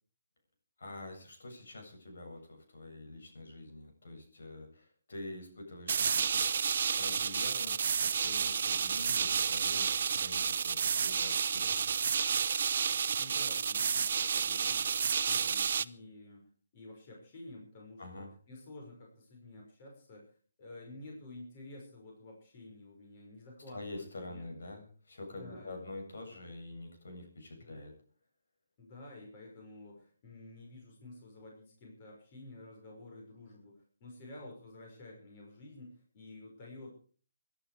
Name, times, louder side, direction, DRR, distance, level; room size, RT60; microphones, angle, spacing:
voice 1, 0.8-6.4 7.0-11.9 18.0-18.3 23.7-27.9, left 2 dB, 70° left, 2 dB, 7.8 m, -46 dB
sound 1, 5.9-15.8, right 6 dB, 50° right, 0.7 m, -30 dB
voice 2, 13.2-20.2 20.6-24.5 25.3-25.7 27.6-27.8 28.8-36.9, left 2 dB, 30° left, -1 dB, 5.8 m, -51 dB
21.5 x 11.5 x 5.0 m, 0.42 s
hypercardioid pair, 170°, 0 cm